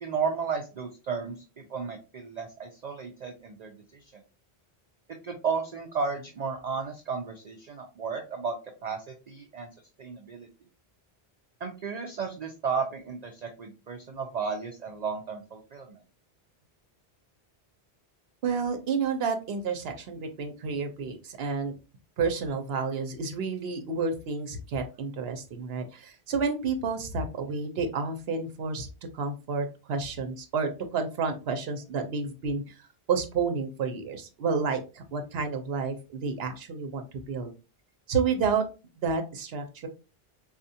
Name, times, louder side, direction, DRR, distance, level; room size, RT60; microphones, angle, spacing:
voice 1, 0.0-3.7 5.2-8.6 8.8-9.7 10.0-10.5 11.6-16.0, right 5 dB, 50° right, 3 dB, 0.5 m, -33 dB
voice 2, 18.4-21.8 22.2-28.9 29.1-32.8 33.1-37.5 38.1-38.6 39.0-39.9, right 5 dB, 75° right, 6 dB, 0.9 m, -30 dB
4.3 x 2.4 x 2.7 m, 0.31 s
omnidirectional pair, 1.1 m